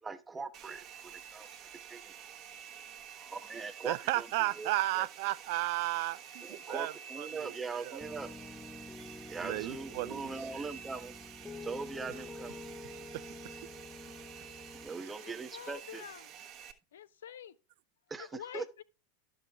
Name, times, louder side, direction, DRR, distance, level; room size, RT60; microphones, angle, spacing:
voice 1, 0.0-1.5 1.9-2.1 3.1-4.3 4.6-5.1 6.4-8.3 9.3-11.1 11.6-12.6 14.7-16.0 18.1-18.7, right 4 dB, 15° right, 1.0 m, -41 dB
Domestic sounds home sounds, 0.5-16.7, right 8 dB, 40° right, 1.2 m, -50 dB
voice 2, 3.8-6.9 7.2-7.5 7.8-8.0 9.4-10.2 13.1-13.3, right 18 dB, 60° right, 0.3 m, -33 dB
Piano, 8.0-14.9, left 3 dB, 15° left, 0.7 m, -48 dB
voice 3, 15.2-16.2 16.9-17.5 18.2-18.8, left 9 dB, 75° left, 0.5 m, -47 dB
11.5 x 6.2 x 3.4 m
hypercardioid pair, 90°, 0 cm